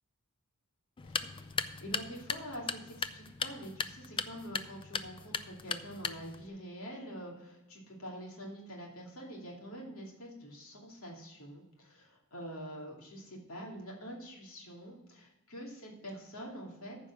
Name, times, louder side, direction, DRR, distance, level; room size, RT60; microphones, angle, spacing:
voice 1, 1.0-17.1, equal, 65° left, -1 dB, 2.7 m, -46 dB
sound 1, 1.0-6.5, left 5 dB, 25° left, 0.4 m, -38 dB
14.5 x 5.1 x 6.3 m, 0.95 s
head